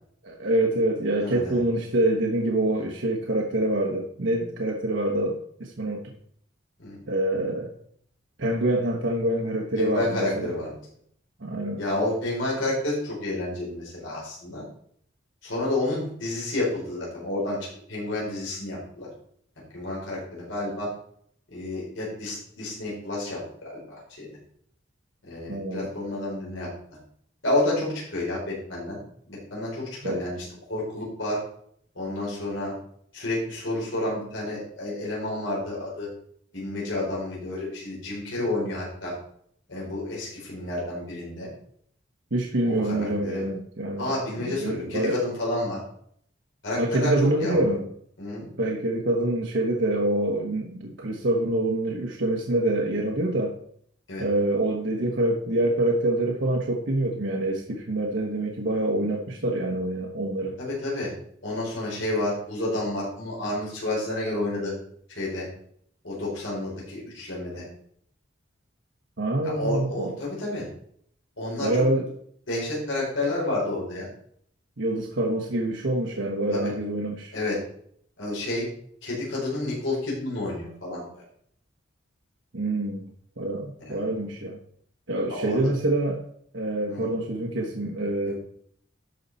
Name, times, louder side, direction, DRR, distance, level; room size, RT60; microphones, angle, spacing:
voice 1, 0.2-6.0 7.1-7.7 8.4-10.5 11.4-11.8 25.5-25.9 30.0-30.2 42.3-44.1 44.5-45.2 46.8-47.9 48.6-53.6 54.2-60.6 69.2-70.1 71.6-72.1 74.8-77.3 82.5-83.0 83.4-84.6 85.1-86.2 86.5-88.3, right 1 dB, 70° right, -1 dB, 1.2 m, -26 dB
voice 2, 1.2-1.6 6.8-7.0 9.7-10.7 11.8-14.6 15.4-19.1 19.7-20.9 21.5-24.3 25.2-26.7 27.4-29.0 29.3-31.4 31.9-32.7 33.1-36.1 36.5-39.1 39.7-41.5 42.6-43.4 44.0-45.8 46.6-47.1 47.4-47.8 48.2-48.5 54.1-54.2 60.6-61.1 61.4-64.7 65.1-65.5 66.0-67.7 69.4-70.7 71.4-71.8 72.5-74.1 76.5-76.7 77.3-77.6 78.2-78.7 79.0-81.2 83.8-83.9 85.3-85.7 86.9-87.1 88.2-88.3, left 2 dB, 75° left, -5 dB, 4.6 m, -30 dB
12.0 x 5.7 x 4.1 m, 0.65 s
head